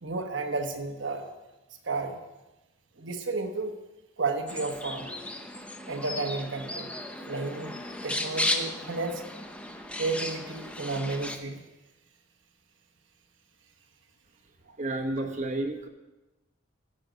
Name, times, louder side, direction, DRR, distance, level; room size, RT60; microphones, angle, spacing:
voice 1, 0.0-1.3 1.8-2.2 3.0-3.7 4.2-5.1 5.9-6.9 7.3-7.8 8.0-9.2 10.0-11.6, right 3 dB, 65° right, 4 dB, 1.2 m, -32 dB
sound 1, 4.5-11.4, left 1 dB, 5° left, 0.7 m, -35 dB
voice 2, 14.8-15.9, right 2 dB, 35° right, 2 dB, 1.2 m, -31 dB
15.5 x 6.4 x 5.2 m, 1.0 s
head